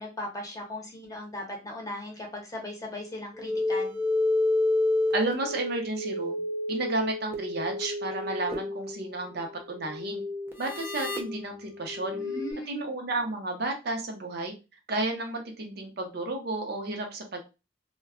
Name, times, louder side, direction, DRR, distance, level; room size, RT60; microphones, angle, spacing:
voice 1, 0.0-4.0 12.1-12.8, left 1 dB, 20° left, 0 dB, 0.8 m, -38 dB
sound 1, 3.3-12.5, left 2 dB, 10° right, 0.5 m, -30 dB
voice 2, 5.1-6.4 6.7-10.2 10.6-12.2 12.7-14.5 14.9-17.4, right 2 dB, 55° right, 3 dB, 0.6 m, -32 dB
2.2 x 2.2 x 3.5 m, 0.29 s
head